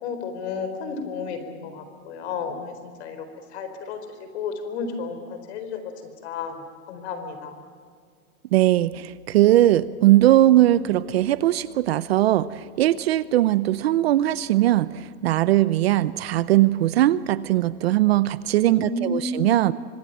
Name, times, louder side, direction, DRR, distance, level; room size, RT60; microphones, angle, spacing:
voice 1, 0.0-3.3 3.5-4.0 4.3-5.8 6.2-6.6 6.9-7.5 18.7-19.6, left 4 dB, 50° left, 8 dB, 4.3 m, -32 dB
voice 2, 8.5-19.7, right 14 dB, 45° right, 17 dB, 0.7 m, -20 dB
25.5 x 19.5 x 9.2 m, 2.1 s
supercardioid pair, 165°, 43 cm